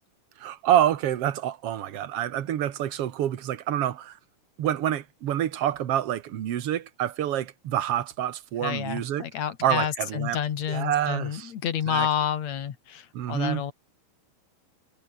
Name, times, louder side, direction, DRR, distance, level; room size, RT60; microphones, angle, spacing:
voice 1, 0.4-4.2 4.6-9.3 9.6-10.4 10.7-11.5 11.9-12.1 13.1-13.7, right 11 dB, 60° right, 2.1 m, -27 dB
voice 2, 8.6-13.7, left 9 dB, 65° left, 3.0 m, -29 dB
omnidirectional pair, 3.3 m